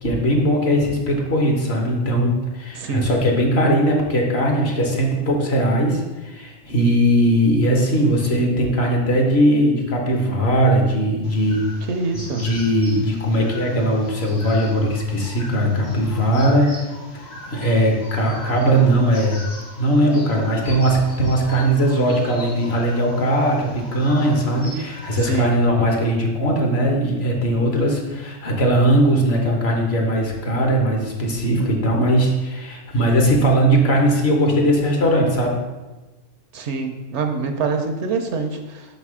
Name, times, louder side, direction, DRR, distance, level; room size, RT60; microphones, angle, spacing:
voice 1, 0.0-11.6 12.1-16.7 17.2-19.4 19.8-35.6, right 1 dB, 55° left, 0 dB, 1.3 m, -19 dB
voice 2, 2.7-3.1 11.9-12.5 25.3-25.6 36.5-38.9, right 4 dB, 65° right, 5 dB, 0.9 m, -25 dB
sound 1, 11.2-25.3, left 1 dB, 85° left, 2.0 m, -40 dB
5.9 x 4.1 x 4.8 m, 1.1 s
omnidirectional pair, 1.3 m